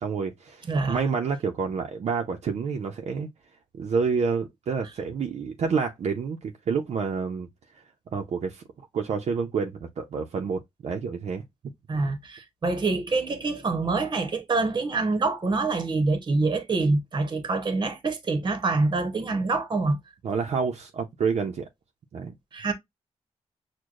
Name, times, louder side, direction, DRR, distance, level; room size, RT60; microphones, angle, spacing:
voice 1, 0.0-3.3 3.7-7.5 8.1-8.6 8.9-11.4 20.2-21.7 22.1-22.3, right 5 dB, 70° right, 0.6 m, -28 dB
voice 2, 0.7-1.0 11.9-20.0 22.5-22.7, right 3 dB, 40° right, 0.9 m, -26 dB
6.3 x 2.2 x 2.4 m
wide cardioid pair, 115°, 12 cm